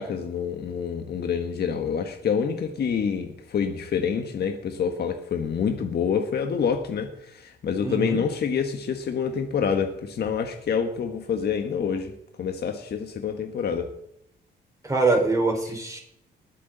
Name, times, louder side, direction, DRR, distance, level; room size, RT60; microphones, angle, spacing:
voice 1, 0.0-12.1 12.4-13.9, left 6 dB, 55° left, 5 dB, 1.4 m, -27 dB
voice 2, 7.8-8.2 14.8-16.0, right 3 dB, 15° right, 0 dB, 4.5 m, -23 dB
20.0 x 8.4 x 4.0 m, 0.75 s
cardioid pair, 90°, 20 cm